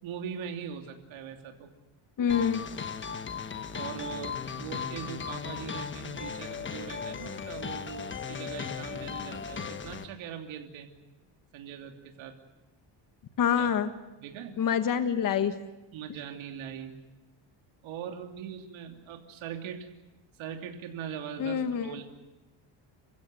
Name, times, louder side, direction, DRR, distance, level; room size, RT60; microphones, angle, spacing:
voice 1, 0.0-1.7 3.7-10.9 11.5-12.4 13.5-13.7 14.2-14.5 15.9-16.9 17.8-19.9 20.4-22.0, right 8 dB, 75° right, 4 dB, 3.1 m, -41 dB
voice 2, 2.2-2.6 13.4-13.9 14.6-15.6 21.4-22.0, left 8 dB, 45° left, 9 dB, 1.4 m, -26 dB
sound 1, 2.3-10.0, left 6 dB, 25° left, 1.2 m, -37 dB
28.0 x 16.0 x 9.8 m, 1.0 s
cardioid pair, 145°, 48 cm